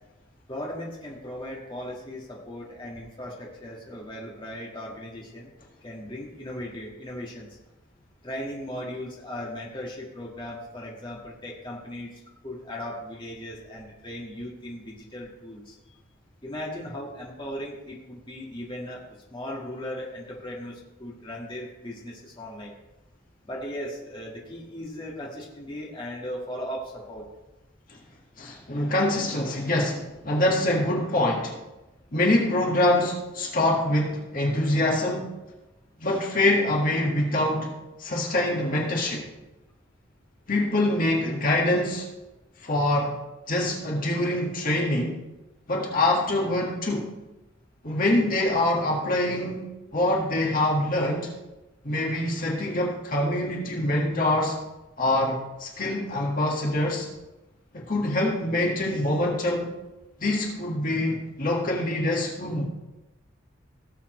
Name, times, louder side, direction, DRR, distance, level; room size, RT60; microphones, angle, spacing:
voice 1, 0.5-5.5 5.8-7.5 8.2-15.8 16.4-19.0 19.3-22.7 23.4-27.3, equal, 25° left, -3 dB, 1.8 m, -37 dB
voice 2, 28.4-31.6 32.1-35.3 36.0-37.7 38.0-39.2 40.5-42.1 42.6-43.2 43.5-45.2 45.7-47.1 47.8-49.7 49.9-51.3 51.8-54.6 55.0-57.1 57.7-59.7 60.2-62.6, left 1 dB, 45° left, -2 dB, 1.8 m, -25 dB
17.5 x 7.3 x 3.1 m, 1.0 s
head